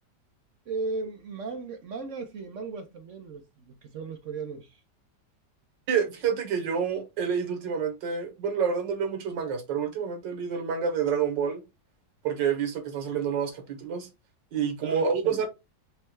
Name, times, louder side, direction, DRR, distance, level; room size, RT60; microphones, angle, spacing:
voice 1, 0.7-4.8 14.8-15.5, right 4 dB, 60° right, 0.8 m, -36 dB
voice 2, 5.9-11.6 12.2-14.1 14.5-15.5, right 7 dB, 90° right, 1.8 m, -28 dB
5.3 x 2.3 x 4.4 m
omnidirectional pair, 1.9 m